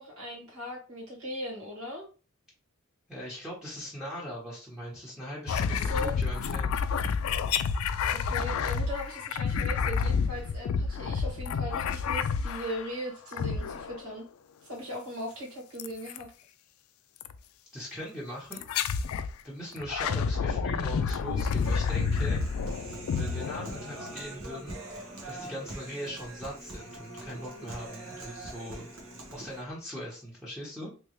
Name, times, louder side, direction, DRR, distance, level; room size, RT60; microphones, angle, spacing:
voice 1, 0.0-2.1 5.7-6.2 8.2-14.3 14.6-16.3, equal, 85° right, -2 dB, 1.9 m, -38 dB
voice 2, 3.1-6.8 17.7-18.6 19.4-22.4 23.2-24.8 25.2-28.9 29.3-30.9, equal, 5° right, -6 dB, 1.0 m, -40 dB
sound 1, 5.5-12.9 13.3-14.1 15.8-16.2 17.2-17.4 18.5-19.3 19.8-24.1, left 6 dB, 70° left, 0.3 m, -29 dB
Human voice, 21.6-29.6, right 2 dB, 65° right, 1.1 m, -43 dB
3.3 x 3.0 x 3.0 m, 0.35 s
head